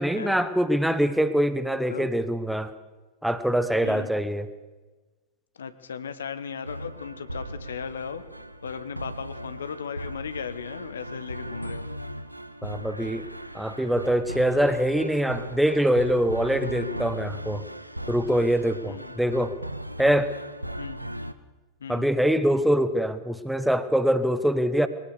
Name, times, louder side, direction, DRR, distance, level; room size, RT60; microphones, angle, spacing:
voice 1, 0.0-2.7 3.2-4.5 12.6-13.2 13.5-17.6 18.1-19.5 20.0-20.3 21.9-24.9, equal, ahead, 12 dB, 1.3 m, -24 dB
voice 2, 5.5-8.2 8.6-11.9 18.8-19.1 20.8-21.0 21.8-22.1, left 7 dB, 70° left, 12 dB, 1.3 m, -36 dB
sound 1, 6.6-21.3, equal, 85° right, 0.9 m, -37 dB
21.5 x 18.5 x 6.8 m, 1.2 s
figure-of-eight pair, 90°, 0 cm